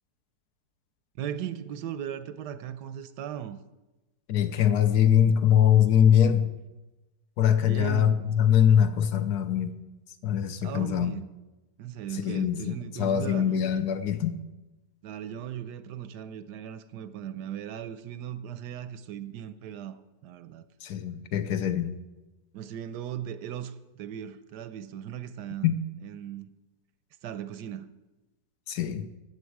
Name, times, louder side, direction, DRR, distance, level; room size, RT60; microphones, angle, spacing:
voice 1, 1.2-3.6 7.7-8.3 10.6-11.3 11.8-13.8 15.0-20.6 22.5-25.7 26.0-26.5 27.2-28.0, right 10 dB, 75° right, 12 dB, 1.2 m, -38 dB
voice 2, 4.3-6.5 7.4-9.7 10.2-11.1 12.2-14.4 20.8-22.0 25.6-25.8 28.7-29.1, left 9 dB, 70° left, 8 dB, 1.1 m, -23 dB
13.5 x 8.0 x 4.7 m, 1.1 s
omnidirectional pair, 1.9 m